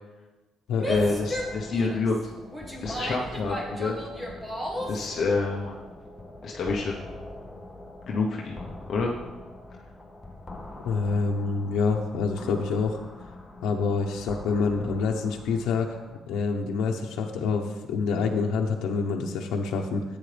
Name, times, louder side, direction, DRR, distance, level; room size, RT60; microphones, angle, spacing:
Female speech woman speaking / Yell, 0.7-5.1, equal, 10° right, 1.2 m, -34 dB
voice 1, 0.9-2.2 2.8-4.0 4.9-5.8 6.4-7.0 8.1-8.5 8.9-9.1, left 4 dB, 40° left, -1 dB, 0.9 m, -27 dB
sound 1, 1.0-16.2, left 1 dB, 10° left, 0.8 m, -43 dB
voice 2, 10.8-13.0 13.6-16.0 16.3-20.0, left 4 dB, 90° left, 1 dB, 0.9 m, -27 dB
14.5 x 9.0 x 3.4 m, 1.2 s
cardioid pair, 180°, 0 cm